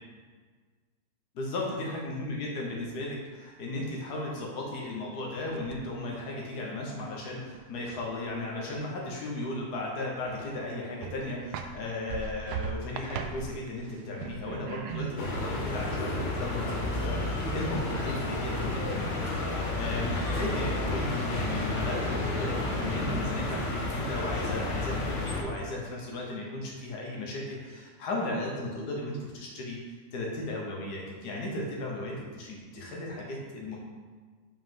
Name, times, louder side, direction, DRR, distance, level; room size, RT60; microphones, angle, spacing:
voice 1, 1.4-29.8 30.1-33.8, left 2 dB, 70° left, -2 dB, 1.6 m, -35 dB
sound 1, 5.4-6.1 6.5-9.1 9.3-9.4 9.9-10.7 11.0-19.6 21.1-21.2 21.5-22.3 22.7-23.4, right 6 dB, 75° right, 1.1 m, -42 dB
sound 2, 15.2-25.4, left 2 dB, 50° left, 1.3 m, -31 dB
5.5 x 5.5 x 5.4 m, 1.5 s
omnidirectional pair, 1.9 m